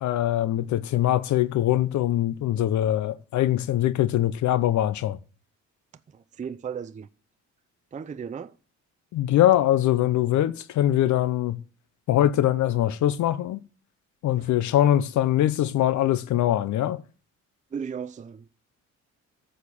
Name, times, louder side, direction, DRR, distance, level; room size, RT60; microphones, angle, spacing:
voice 1, 0.0-5.2 9.1-11.6 12.1-13.6 14.2-17.0, left 12 dB, 70° left, 0.6 m, -22 dB
voice 2, 6.1-7.1 7.9-8.5 12.7-12.8 14.3-14.5 17.7-18.5, right 7 dB, 25° right, 0.5 m, -36 dB
9.8 x 6.4 x 7.0 m
cardioid pair, 90°, 30 cm